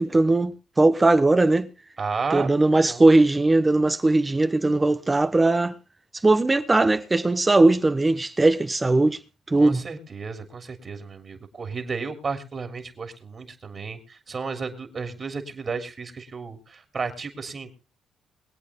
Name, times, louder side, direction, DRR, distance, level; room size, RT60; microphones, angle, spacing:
voice 1, 0.0-1.7 2.3-5.7 6.2-9.2 9.5-9.8, right 2 dB, 20° right, 1.0 m, -19 dB
voice 2, 2.0-3.1 9.5-17.8, right 4 dB, 40° right, 3.3 m, -33 dB
23.0 x 8.5 x 3.7 m
cardioid pair, 90°, 0 cm